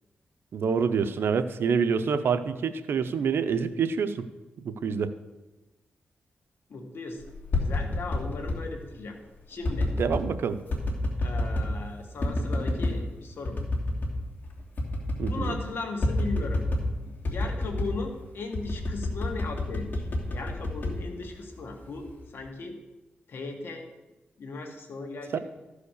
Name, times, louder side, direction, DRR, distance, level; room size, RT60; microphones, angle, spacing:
voice 1, 0.5-4.3 4.6-5.1 10.0-10.6 15.2-15.6 25.3-25.4, right 6 dB, 80° right, 11 dB, 0.7 m, -27 dB
voice 2, 6.7-7.2 7.5-9.2 9.5-9.9 11.2-13.6 15.2-16.6 17.0-20.0 20.3-22.7 23.3-23.9 24.4-25.4, left 3 dB, 70° left, 3 dB, 1.8 m, -37 dB
sound 1, 7.3-8.6 9.6-10.3 10.7-11.8 12.2-13.0 13.4-14.2 14.4-14.5 14.8-15.6 16.0-16.9 17.2-18.0 18.5-21.6 22.1-22.5, left 1 dB, 55° left, 2.7 m, -29 dB
14.0 x 5.0 x 6.6 m, 1.1 s
cardioid pair, 90°, 4 cm